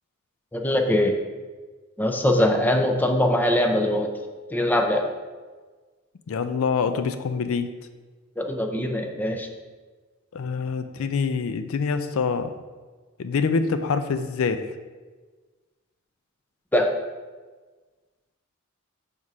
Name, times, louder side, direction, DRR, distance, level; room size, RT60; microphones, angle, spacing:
voice 1, 0.5-1.2 2.0-4.1 4.5-5.1 8.4-9.5 16.7-16.9, left 1 dB, 10° left, 3 dB, 0.5 m, -22 dB
voice 2, 6.3-7.7 10.3-12.5 13.2-14.7, left 5 dB, 70° left, 9 dB, 0.4 m, -25 dB
6.2 x 3.6 x 5.4 m, 1.4 s
head